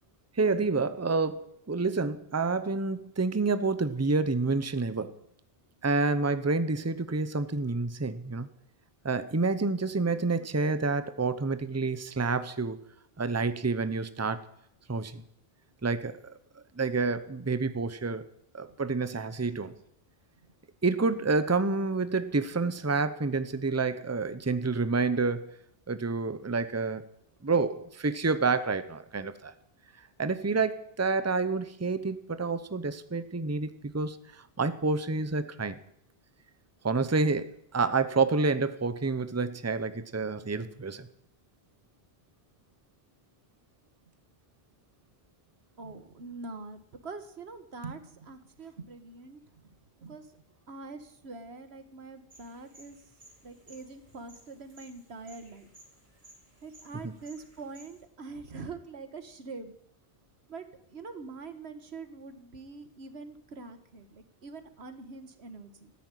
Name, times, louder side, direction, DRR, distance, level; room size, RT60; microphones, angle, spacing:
voice 1, 0.4-5.2 5.8-8.5 9.0-12.8 13.2-14.4 14.9-15.2 15.8-16.2 16.8-18.2 18.5-19.7 20.8-25.5 25.9-27.0 27.4-29.5 30.2-35.8 36.8-41.1 57.0-57.1, right 3 dB, 15° right, 12 dB, 0.8 m, -28 dB
voice 2, 19.4-19.8 45.8-50.3 50.7-53.0 53.4-55.7 56.6-59.7 60.5-65.9, right 4 dB, 90° right, 9 dB, 1.7 m, -44 dB
sound 1, 52.3-58.0, right 1 dB, 50° right, 4.1 m, -57 dB
14.0 x 10.0 x 9.1 m, 0.73 s
omnidirectional pair, 1.0 m